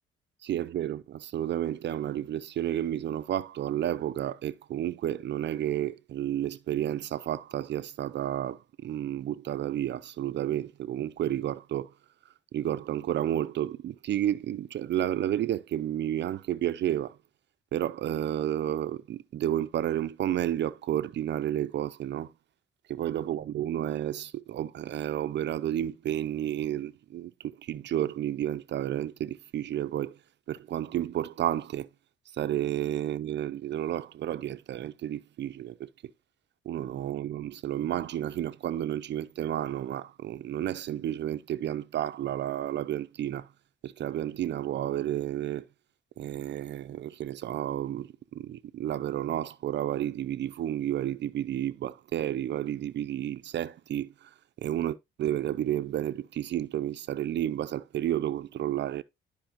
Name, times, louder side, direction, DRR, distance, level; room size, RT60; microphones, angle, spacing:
voice 1, 0.4-11.9 12.5-17.2 17.7-22.3 22.9-30.2 30.5-31.9 32.3-35.9 36.7-43.5 43.8-45.6 46.2-59.0, right 12 dB, 65° right, 0.6 m, -31 dB
12.5 x 5.4 x 2.9 m
cardioid pair, 90°, 20 cm